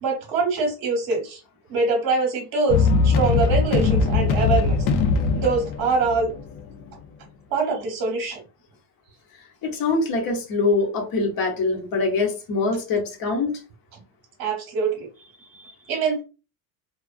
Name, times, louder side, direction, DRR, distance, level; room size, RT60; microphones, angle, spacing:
voice 1, 0.0-1.4 1.7-4.9 5.3-6.3 7.5-8.4 13.9-14.0 14.4-15.1 15.5-16.2, right 3 dB, 45° right, 2 dB, 1.0 m, -24 dB
sound 1, 2.7-6.7, left 4 dB, 70° left, 0.7 m, -21 dB
voice 2, 9.6-13.6, left 3 dB, 45° left, 1 dB, 0.9 m, -23 dB
2.3 x 2.2 x 2.4 m, 0.32 s
cardioid pair, 140°, 49 cm